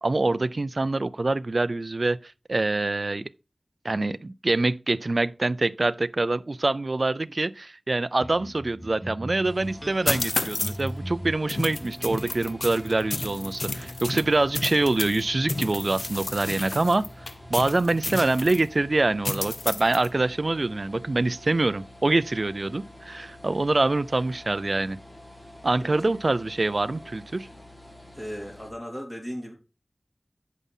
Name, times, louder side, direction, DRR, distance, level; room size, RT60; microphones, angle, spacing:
voice 1, 0.0-3.3 3.8-17.0 17.5-25.0 25.6-27.5, right 2 dB, 65° right, 0.4 m, -25 dB
sound 1, 8.2-22.9, equal, 15° right, 0.9 m, -43 dB
sound 2, 9.4-28.7, left 1 dB, 35° left, 2.6 m, -48 dB
sound 3, 10.1-10.9 11.5-15.2 15.5-18.6 19.2-20.1, left 2 dB, 75° left, 0.6 m, -31 dB
voice 2, 28.1-29.5, equal, 20° left, 3.4 m, -36 dB
8.3 x 5.4 x 3.6 m
wide cardioid pair, 50°, 0 cm